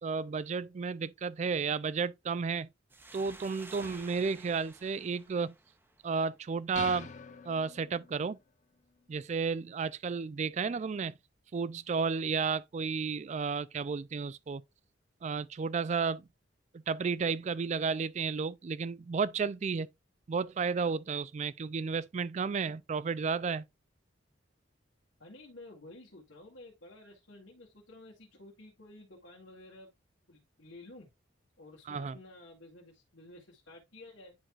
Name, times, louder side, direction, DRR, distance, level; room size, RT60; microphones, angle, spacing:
voice 1, 0.0-2.7 3.1-5.5 6.0-7.1 7.5-8.4 9.1-11.1 11.5-14.6 15.2-16.2 16.7-19.9 20.3-23.6 31.9-32.2, right 5 dB, 35° right, 0.3 m, -32 dB
sound 1, 2.9-6.3, right 2 dB, 10° right, 0.9 m, -52 dB
sound 2, 6.8-8.4, left 5 dB, 40° left, 0.6 m, -45 dB
voice 2, 25.2-29.9 30.3-31.1 31.6-34.3, left 2 dB, 80° left, 1.8 m, -52 dB
10.0 x 4.7 x 2.3 m
head